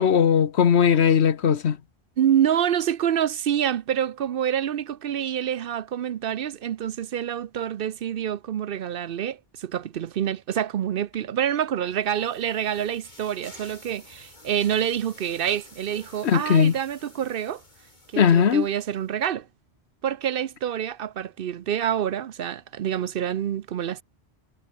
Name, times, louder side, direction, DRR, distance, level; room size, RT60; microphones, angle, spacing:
voice 1, 0.0-1.8 16.2-16.7 18.2-18.7, left 7 dB, 85° left, 1.3 m, -19 dB
voice 2, 2.2-17.6 18.1-19.5 20.0-24.0, right 9 dB, 65° right, 0.8 m, -27 dB
sound 1, 11.6-19.1, left 2 dB, 45° left, 4.0 m, -51 dB
omnidirectional pair, 1.1 m